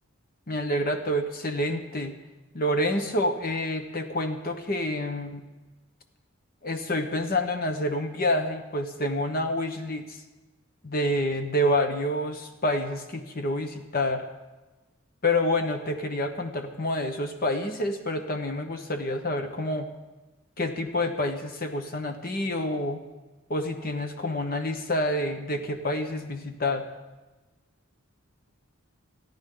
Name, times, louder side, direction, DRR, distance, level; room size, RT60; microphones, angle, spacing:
voice 1, 0.5-2.1 2.5-5.4 6.6-10.2 10.8-14.3 15.2-19.9 20.6-23.0 23.5-26.8, left 1 dB, 45° left, 5 dB, 1.2 m, -28 dB
29.5 x 10.5 x 3.9 m, 1.2 s
head